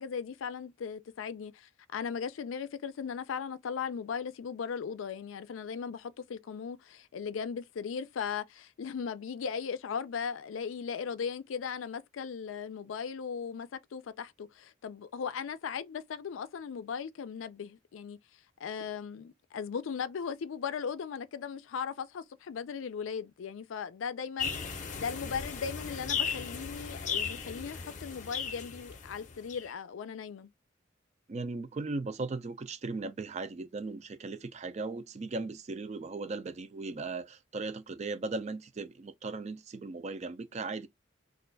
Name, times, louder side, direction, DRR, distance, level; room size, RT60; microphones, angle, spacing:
voice 1, 0.0-18.2 18.6-24.5 24.9-30.5, left 6 dB, 90° left, 0.4 m, -38 dB
sound 1, 24.4-29.7, left 6 dB, 40° left, 0.6 m, -36 dB
voice 2, 31.3-40.9, right 3 dB, 35° right, 0.4 m, -37 dB
2.4 x 2.3 x 3.8 m
head